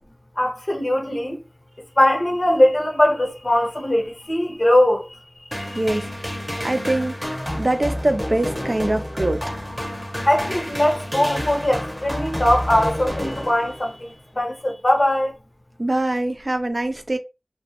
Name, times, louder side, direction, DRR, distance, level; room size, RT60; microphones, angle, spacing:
voice 1, 0.4-1.4 2.0-5.2 5.5-5.8 10.2-15.3, left 1 dB, 55° left, 0.8 m, -20 dB
sound 1, 5.5-14.0, equal, 10° left, 0.7 m, -29 dB
voice 2, 5.7-9.4 15.8-17.2, right 1 dB, 55° right, 0.4 m, -24 dB
2.2 x 2.1 x 2.8 m
wide cardioid pair, 45°, 0 cm